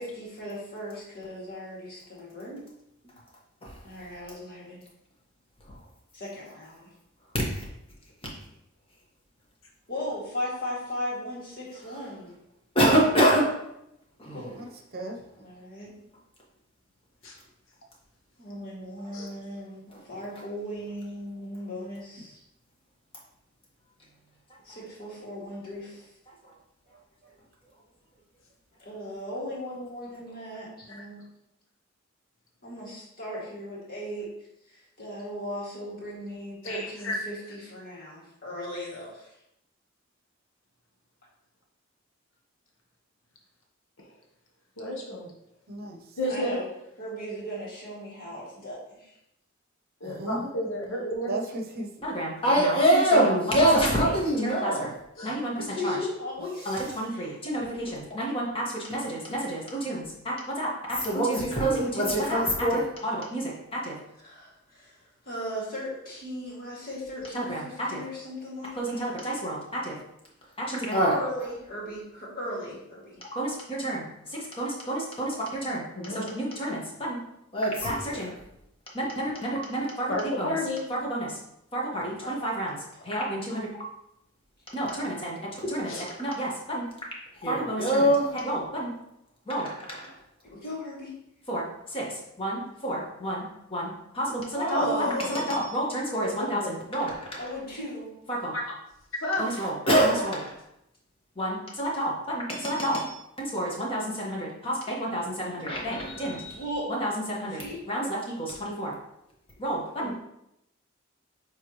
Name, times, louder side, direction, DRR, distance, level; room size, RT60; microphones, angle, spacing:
voice 1, 0.0-2.6 3.8-4.8 6.1-6.9 9.9-12.3 14.3-14.5 15.4-15.9 18.4-22.4 24.6-26.1 28.8-31.2 32.6-34.3 34.7-39.3 46.2-46.7 47.0-49.2 55.6-57.4 64.2-69.4 71.1-73.2 82.2-82.3 82.9-83.1 90.4-91.1 94.7-95.4 97.4-98.1 100.1-100.4 106.5-106.9 107.5-107.8, left 1 dB, 50° left, -5 dB, 2.4 m, -37 dB
voice 2, 12.7-13.5 52.0-54.9 55.2-56.0 56.6-63.9 67.3-67.6 67.9-68.0 68.8-69.6 69.8-70.0 70.6-71.1 73.3-74.0 74.3-75.3 75.6-76.8 77.1-77.2 77.5-78.3 78.9-80.6 80.9-81.4 81.7-82.8 83.0-83.7 84.7-86.9 87.4-88.9 89.5-90.1 91.5-93.4 93.7-97.1 98.3-98.5 99.4-100.4 101.4-103.1 103.4-106.6 106.9-108.9 109.6-110.1, right 1 dB, 30° left, -3 dB, 1.5 m, -27 dB
voice 3, 26.9-27.3 45.7-46.2 50.0-50.7 51.3-51.9 52.4-52.6 56.8-57.0, right 1 dB, 50° right, 2 dB, 0.8 m, -36 dB
voice 4, 36.6-37.2 44.8-45.3 46.2-46.6 50.0-51.3 55.2-55.3 75.9-76.4 80.1-80.8 85.9-86.0 94.5-95.3 96.2-96.7 98.5-98.7 99.2-99.4 110.0-110.1, left 1 dB, 75° left, -1 dB, 1.1 m, -31 dB
9.3 x 3.3 x 3.1 m, 0.82 s
head